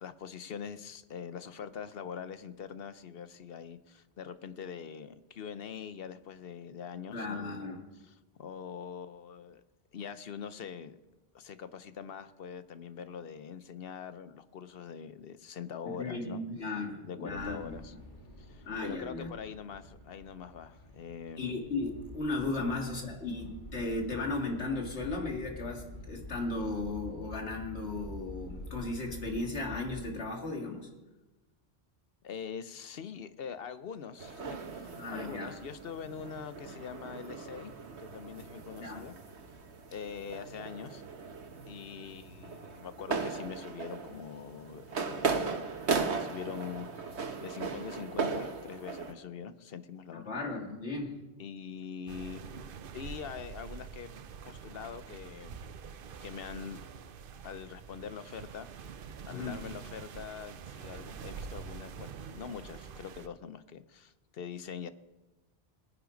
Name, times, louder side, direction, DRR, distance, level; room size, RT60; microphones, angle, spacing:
voice 1, 0.0-7.7 8.0-9.6 9.9-11.0 11.3-16.4 17.0-17.9 18.4-21.5 22.6-22.7 32.2-37.7 38.0-39.2 39.9-41.0 41.7-45.7 46.2-47.1 47.4-50.3 51.4-54.1 54.4-55.6 56.2-56.8 57.4-58.7 59.3-64.9, left 7 dB, 65° left, 12 dB, 0.9 m, -43 dB
voice 2, 7.1-7.8 15.8-17.8 18.7-19.3 21.4-30.9 35.0-35.6 38.8-39.0 50.1-51.2 59.3-59.6, left 2 dB, 90° left, 1 dB, 2.4 m, -36 dB
sound 1, 17.3-30.1, left 2 dB, 50° left, 1.9 m, -47 dB
sound 2, 34.2-49.1, right 5 dB, 90° right, 1.4 m, -37 dB
sound 3, 52.1-63.3, right 6 dB, 60° right, 0.8 m, -46 dB
20.0 x 9.9 x 5.2 m, 1.1 s
omnidirectional pair, 1.1 m